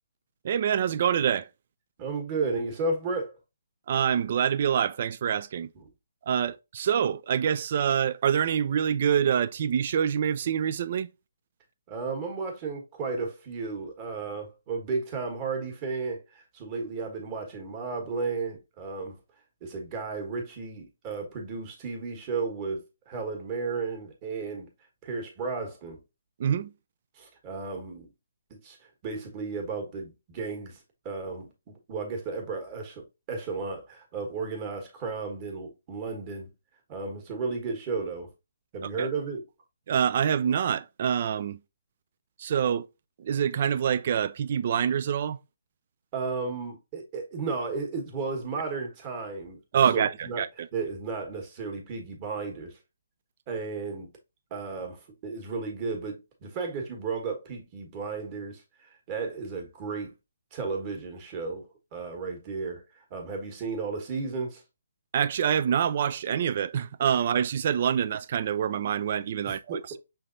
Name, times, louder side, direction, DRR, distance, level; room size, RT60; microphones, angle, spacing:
voice 1, 0.4-1.5 3.9-5.7 6.3-11.1 26.4-26.7 38.8-39.1 39.9-41.6 42.4-42.9 43.2-45.4 49.7-50.7 65.1-70.0, right 8 dB, 45° right, 0.3 m, -26 dB
voice 2, 2.0-3.4 5.7-5.8 11.9-19.2 19.6-24.7 25.0-26.0 27.2-28.1 28.5-28.8 29.0-30.8 31.0-36.5 36.9-38.3 38.7-39.4 46.1-49.6 49.9-50.4 50.7-52.8 53.5-54.1 54.5-60.1 60.5-64.6 69.4-69.8, right 4 dB, 30° right, 1.3 m, -34 dB
5.8 x 3.4 x 2.5 m
hypercardioid pair, 150°, 0 cm